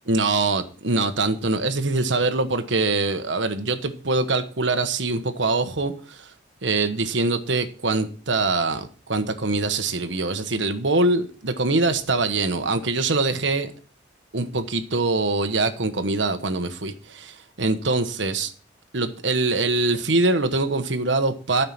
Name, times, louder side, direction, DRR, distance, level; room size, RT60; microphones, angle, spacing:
voice 1, 0.1-6.3 6.6-13.7 14.3-18.5 18.9-21.7, right 3 dB, 80° right, 1.2 m, -23 dB
13.0 x 5.8 x 5.9 m
head